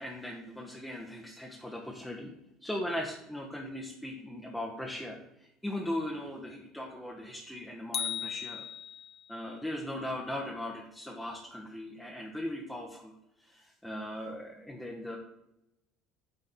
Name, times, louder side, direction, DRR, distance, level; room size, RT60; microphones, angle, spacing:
voice 1, 0.0-2.3 2.6-8.6 9.3-13.1 13.4-15.2, left 1 dB, 5° left, -1 dB, 1.0 m, -39 dB
sound 1, 7.9-9.3, left 8 dB, 45° left, 0.5 m, -36 dB
8.9 x 4.0 x 4.1 m, 0.86 s
figure-of-eight pair, 65°, 0 cm